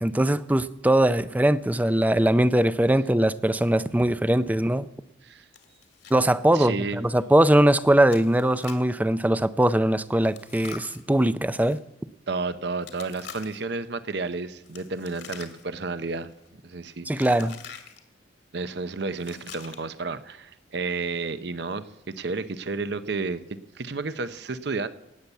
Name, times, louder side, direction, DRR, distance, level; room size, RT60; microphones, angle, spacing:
voice 1, 0.0-4.9 6.1-11.8 17.1-17.6, right 1 dB, 10° right, 0.4 m, -21 dB
Chewing mastication, 5.5-6.2 6.5-6.6 7.1-7.2 8.1-8.9 10.2-11.8 12.8-13.8 14.6-15.8 16.1-16.5 17.2-18.0 19.1-20.0, left 7 dB, 65° left, 2.0 m, -45 dB
voice 2, 6.5-7.0 12.3-16.3 16.6-17.3 18.5-23.4 23.7-24.9, right 3 dB, 60° right, 0.7 m, -31 dB
18.0 x 7.0 x 8.2 m
head